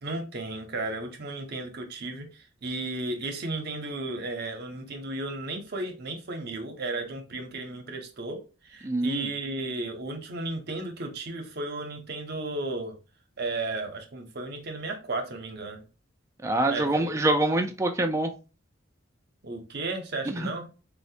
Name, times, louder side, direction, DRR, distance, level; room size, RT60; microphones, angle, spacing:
voice 1, 0.0-8.4 8.6-13.0 13.4-15.8 16.7-17.1 19.4-20.7, right 2 dB, 55° right, 0.7 m, -34 dB
voice 2, 8.8-9.2 16.4-18.3 20.3-20.5, right 2 dB, 15° right, 0.3 m, -25 dB
4.0 x 2.1 x 2.7 m
head